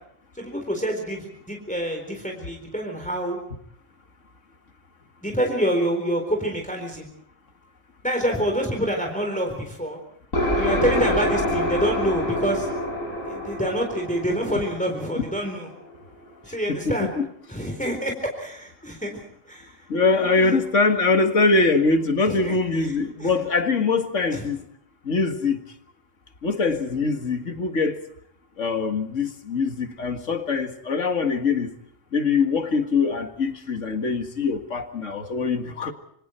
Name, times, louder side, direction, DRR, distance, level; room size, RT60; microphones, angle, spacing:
voice 1, 0.3-3.4 5.2-7.1 8.0-10.0 10.6-12.7 13.2-15.7 16.4-17.1 17.5-19.2 19.5-19.7 20.1-20.6 22.3-22.9 23.2-23.3 24.3-24.4, equal, 5° left, 2 dB, 4.0 m, -27 dB
sound 1, 10.3-15.9, equal, 90° left, 6.4 m, -27 dB
voice 2, 16.7-17.3 19.9-24.7 25.0-25.6 26.4-28.0 28.6-31.7 32.1-35.9, left 4 dB, 70° left, 7 dB, 2.3 m, -23 dB
26.5 x 26.0 x 4.4 m, 0.71 s
omnidirectional pair, 1.4 m